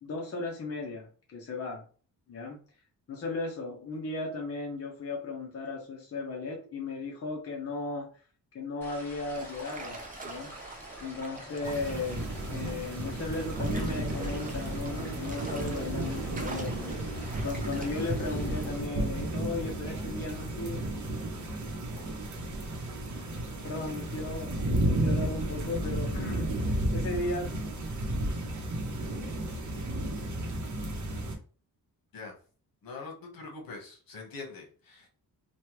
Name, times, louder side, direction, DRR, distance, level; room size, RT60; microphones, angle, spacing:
voice 1, 0.0-1.8 2.3-2.6 3.1-8.1 8.5-10.5 11.0-12.3 12.5-16.9 17.4-20.8 22.0-22.1 23.6-24.5 24.9-27.5, left 3 dB, 40° left, -1 dB, 0.7 m, -36 dB
sound 1, 8.8-18.8, equal, 5° left, 1.0 m, -48 dB
sound 2, 9.3-18.2, right 3 dB, 25° right, 0.5 m, -46 dB
sound 3, 11.6-31.3, right 1 dB, 50° right, 0.8 m, -33 dB
voice 2, 32.8-35.1, left 3 dB, 70° left, 1 dB, 1.1 m, -43 dB
3.2 x 2.2 x 2.9 m, 0.40 s
wide cardioid pair, 160°, 37 cm